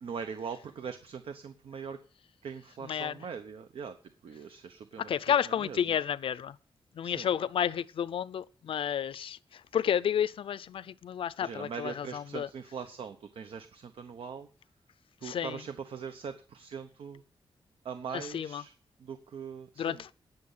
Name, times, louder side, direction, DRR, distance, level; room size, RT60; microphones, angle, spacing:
voice 1, 0.0-2.0 2.4-4.0 4.2-5.1 5.5-6.0 7.0-7.3 11.4-14.5 15.2-17.2 17.8-18.7 19.0-20.0, right 6 dB, 80° right, 0.9 m, -41 dB
voice 2, 2.8-3.2 5.0-6.6 6.9-12.5 15.2-15.6 18.1-18.6 19.8-20.1, left 9 dB, 75° left, 0.5 m, -31 dB
18.5 x 6.8 x 5.5 m
wide cardioid pair, 170°, 9 cm